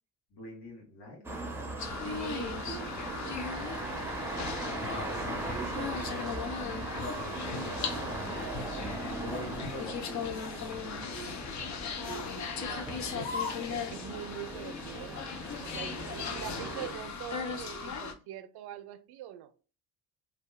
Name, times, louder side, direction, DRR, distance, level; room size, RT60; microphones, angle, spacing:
voice 1, 0.3-1.5 3.5-3.9 5.2-6.3 7.1-8.5 8.7-11.0, left 2 dB, 70° left, 1.4 m, -47 dB
sound 1, 1.2-16.9, right 2 dB, 5° right, 0.5 m, -39 dB
sound 2, 1.8-18.1, left 6 dB, 45° left, 0.5 m, -38 dB
voice 2, 1.8-4.6 5.5-6.1 11.1-11.4 12.1-15.2 15.6-19.5, right 11 dB, 65° right, 0.5 m, -44 dB
sound 3, 6.9-8.1 8.5-8.8 9.2-9.8 10.2-10.7 11.1-11.4 12.0-12.5 13.1-13.8, left 4 dB, 90° left, 1.1 m, -41 dB
2.7 x 2.3 x 2.2 m
supercardioid pair, 75°, 42 cm